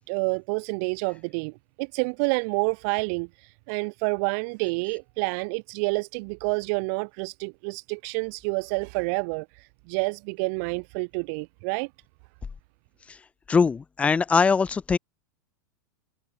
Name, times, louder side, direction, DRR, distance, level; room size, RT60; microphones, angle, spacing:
voice 1, 0.1-1.5 1.8-11.9, right 33 dB, 55° right, 0.9 m, -28 dB
voice 2, 13.5-15.0, left 5 dB, 10° left, 0.4 m, -21 dB
supercardioid pair, 125°, 10 cm